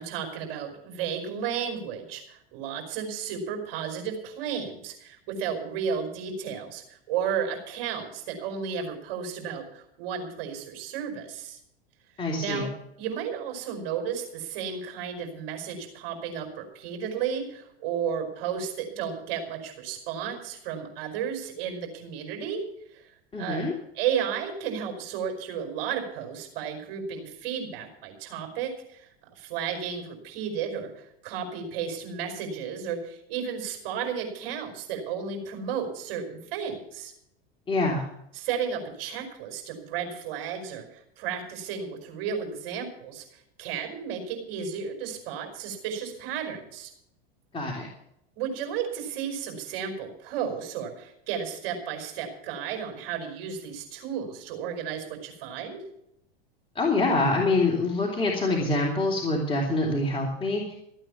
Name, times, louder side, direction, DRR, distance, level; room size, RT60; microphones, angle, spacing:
voice 1, 0.0-11.6 12.4-12.7 13.0-22.6 22.9-23.1 23.4-23.6 23.9-29.1 29.3-37.1 38.3-46.9 48.4-55.8, right 7 dB, 55° right, 3 dB, 5.1 m, -33 dB
voice 2, 12.2-12.7 23.3-23.7 37.7-38.0 47.5-47.9 56.7-60.8, left 2 dB, 15° left, -2 dB, 3.1 m, -25 dB
15.0 x 9.0 x 7.2 m, 0.76 s
hypercardioid pair, 95°, 30 cm